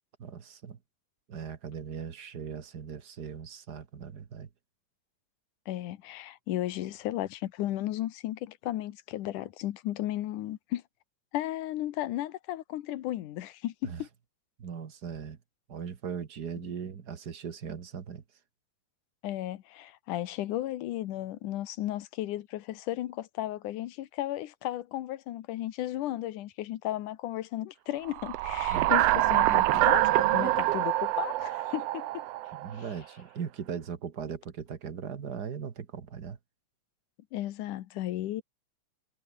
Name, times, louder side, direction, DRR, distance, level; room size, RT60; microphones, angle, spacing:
voice 1, 0.2-0.8 1.3-4.5 13.8-14.0 14.6-15.4 15.7-18.2 28.7-28.9 32.5-36.4, right 7 dB, 45° right, 1.5 m, -39 dB
voice 2, 5.7-10.8 11.3-14.1 19.2-32.2 37.3-38.4, left 14 dB, 75° left, 2.6 m, -34 dB
sound 1, 28.1-32.8, right 15 dB, 75° right, 1.5 m, -25 dB
omnidirectional pair, 3.7 m